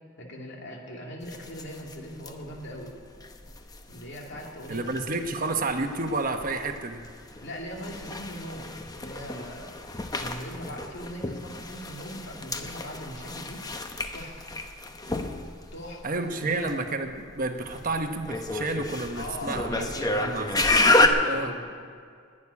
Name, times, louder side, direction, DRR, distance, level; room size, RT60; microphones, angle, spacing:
voice 1, 0.2-2.9 3.9-5.4 7.4-8.7 9.0-9.7 10.1-13.7 14.1-14.4 15.7-16.7 19.1-20.6 21.3-21.7, equal, 60° left, 0 dB, 2.6 m, -40 dB
sound 1, 1.2-21.1, left 2 dB, 20° left, 0.9 m, -30 dB
voice 2, 4.7-7.0 16.0-20.5 20.8-21.5, right 3 dB, 45° right, 6 dB, 1.0 m, -30 dB
12.0 x 9.8 x 9.8 m, 2.2 s
head